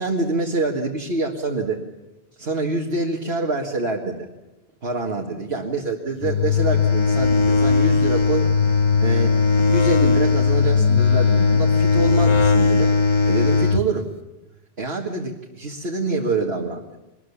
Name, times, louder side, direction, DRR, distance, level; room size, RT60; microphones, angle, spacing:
voice 1, 0.0-1.8 2.4-4.3 4.8-8.5 9.0-9.4 9.7-12.9 13.2-14.1 14.8-17.0, right 3 dB, 70° right, 0 dB, 2.3 m, -26 dB
sound 1, 6.2-13.8, left 4 dB, 30° left, 1.0 m, -18 dB
24.5 x 20.5 x 7.2 m, 1.0 s
omnidirectional pair, 1.1 m